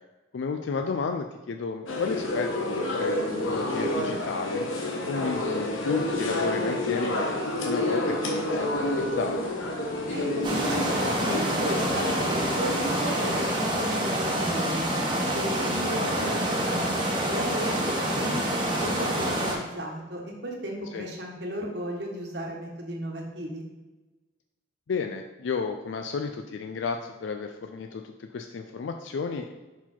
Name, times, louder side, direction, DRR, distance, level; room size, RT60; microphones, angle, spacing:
voice 1, 0.3-4.7 5.1-7.3 7.6-9.6 15.9-16.3 20.9-21.1 24.9-29.5, left 5 dB, 70° left, 5 dB, 0.4 m, -32 dB
sound 1, 1.9-13.4, left 1 dB, 85° left, 1.1 m, -29 dB
voice 2, 10.1-14.9 15.3-18.4 18.8-23.6, right 1 dB, 55° right, 0 dB, 1.3 m, -35 dB
sound 2, 10.4-19.5, right 1 dB, 25° right, 1.1 m, -27 dB
5.7 x 4.7 x 4.4 m, 1.2 s
head